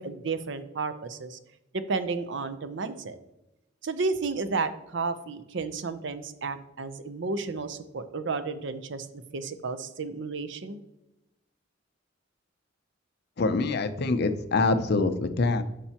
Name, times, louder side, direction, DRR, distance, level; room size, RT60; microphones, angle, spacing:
voice 1, 0.0-1.4 1.9-3.2 3.8-10.8, right 4 dB, 65° right, 11 dB, 0.6 m, -32 dB
voice 2, 13.4-15.6, left 3 dB, 55° left, 10 dB, 0.6 m, -25 dB
9.9 x 5.8 x 2.9 m, 0.93 s
head